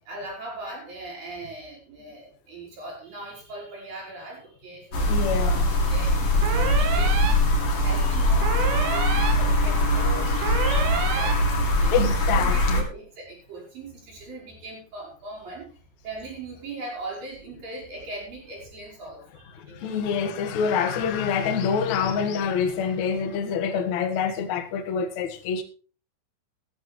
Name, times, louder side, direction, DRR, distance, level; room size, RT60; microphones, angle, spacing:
voice 1, 0.0-5.3 5.9-15.7 16.0-20.0, right 2 dB, 45° right, -2 dB, 6.7 m, -40 dB
sound 1, 4.9-12.8, left 1 dB, 40° left, 2.3 m, -22 dB
voice 2, 5.1-5.6 11.9-12.8 19.7-25.6, left 6 dB, 70° left, 6 dB, 1.7 m, -26 dB
sound 2, 6.4-7.3 8.4-9.3 10.4-11.3, right 7 dB, 75° right, 4.2 m, -29 dB
14.0 x 14.0 x 3.1 m, 0.38 s
omnidirectional pair, 5.9 m